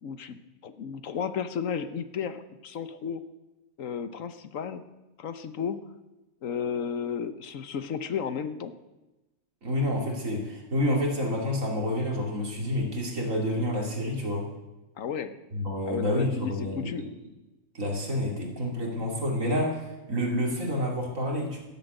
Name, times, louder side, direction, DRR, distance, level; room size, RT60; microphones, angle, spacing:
voice 1, 0.0-3.2 3.8-4.8 5.2-5.8 6.4-8.7 15.0-15.3 15.8-17.1, left 7 dB, 75° left, 11 dB, 1.3 m, -33 dB
voice 2, 9.6-14.5 15.5-17.1 17.7-21.6, left 1 dB, 75° right, 0 dB, 3.4 m, -29 dB
13.5 x 10.5 x 8.1 m, 1.0 s
omnidirectional pair, 1.4 m